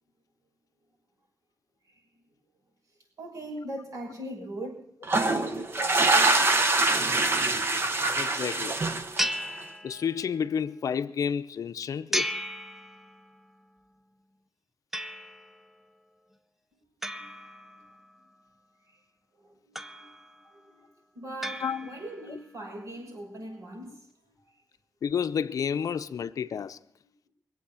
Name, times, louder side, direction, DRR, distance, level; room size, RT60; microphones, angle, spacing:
voice 1, 3.2-4.9 17.1-17.2 18.9-19.0 19.4-20.1 20.4-20.9 21.1-24.1, right 1 dB, 60° right, 6.5 m, -40 dB
sound 1, 5.0-9.6, right 2 dB, 40° right, 1.2 m, -24 dB
voice 2, 8.2-8.8 9.8-12.3 21.6-21.9 22.3-22.4 25.0-26.8, left 7 dB, 60° left, 0.6 m, -30 dB
sound 2, 9.2-10.4 12.1-13.4 14.9-15.6 17.0-18.2 19.8-20.5 21.4-22.3, equal, 5° right, 0.6 m, -35 dB
23.5 x 8.2 x 7.1 m
wide cardioid pair, 155°, 6 cm